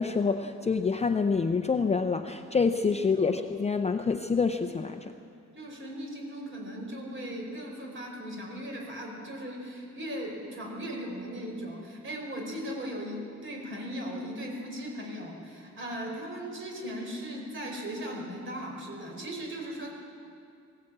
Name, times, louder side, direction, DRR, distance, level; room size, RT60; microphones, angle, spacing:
voice 1, 0.0-5.1, left 5 dB, 20° left, 6 dB, 0.5 m, -27 dB
voice 2, 5.5-19.9, equal, 40° right, 0 dB, 4.7 m, -38 dB
20.5 x 16.5 x 8.6 m, 2.5 s
wide cardioid pair, 180°, 30 cm